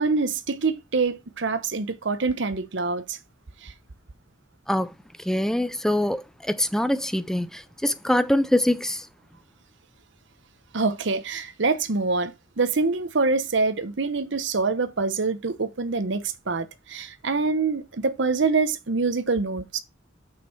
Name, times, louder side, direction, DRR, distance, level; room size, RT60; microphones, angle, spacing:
voice 1, 0.0-3.2 3.6-3.7 10.7-19.8, right 4 dB, 65° right, 0.8 m, -25 dB
voice 2, 5.2-9.1, left 1 dB, ahead, 0.4 m, -24 dB
6.3 x 5.9 x 4.4 m
head